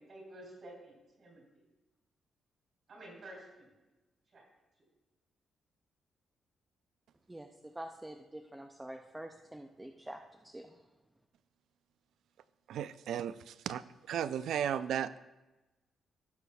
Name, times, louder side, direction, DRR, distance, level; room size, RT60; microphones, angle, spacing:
voice 1, 0.1-1.7 2.9-3.7 4.3-4.5 4.8-4.9, right 1 dB, 45° right, -1 dB, 3.2 m, -51 dB
voice 2, 7.3-10.9, right 1 dB, 10° right, 4 dB, 0.4 m, -47 dB
voice 3, 12.7-13.8 14.1-15.2, right 9 dB, 80° right, 15 dB, 0.3 m, -35 dB
16.5 x 6.2 x 2.3 m, 1.1 s
wide cardioid pair, 170°, 0 cm